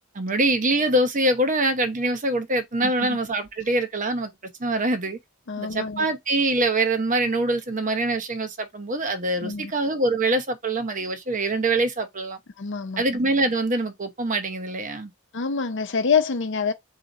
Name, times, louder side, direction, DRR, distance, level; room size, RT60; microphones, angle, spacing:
voice 1, 0.1-4.3 4.6-5.2 5.6-12.4 13.0-15.1, right 2 dB, 40° right, 0.8 m, -24 dB
voice 2, 2.8-3.2 5.5-6.1 9.4-9.7 12.6-13.0 15.3-16.7, left 5 dB, 60° left, 0.6 m, -26 dB
4.2 x 2.8 x 3.8 m
head